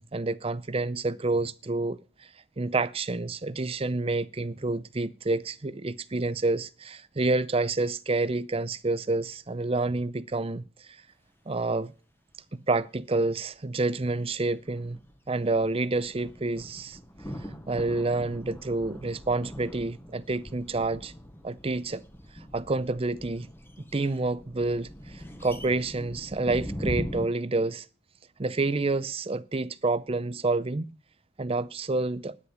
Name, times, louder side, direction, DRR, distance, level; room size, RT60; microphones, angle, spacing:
voice 1, 0.0-2.3 2.6-11.0 11.5-11.9 12.5-15.0 15.3-17.0 17.4-21.1 21.4-22.0 22.3-23.5 23.9-27.9 28.4-30.9 31.4-32.4, right 3 dB, 25° right, 0.5 m, -28 dB
sound 1, 14.5-27.3, equal, 10° left, 0.9 m, -41 dB
9.9 x 9.8 x 6.3 m
head